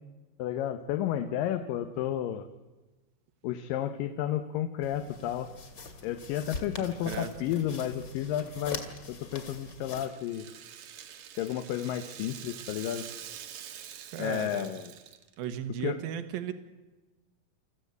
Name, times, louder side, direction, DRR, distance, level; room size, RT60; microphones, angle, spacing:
voice 1, 0.4-2.5 3.4-5.5 6.0-8.8 9.1-10.5 11.4-13.1 14.2-14.9 15.8-16.0, left 11 dB, 80° left, 8 dB, 2.5 m, -32 dB
sound 1, 4.8-10.1, left 4 dB, 35° left, 2.6 m, -43 dB
voice 2, 6.8-7.3 14.1-14.7 15.4-16.5, right 10 dB, 85° right, 9 dB, 3.0 m, -36 dB
Rattle (instrument), 9.3-15.5, right 9 dB, 65° right, 2.1 m, -46 dB
28.5 x 14.5 x 8.2 m, 1.2 s
omnidirectional pair, 4.1 m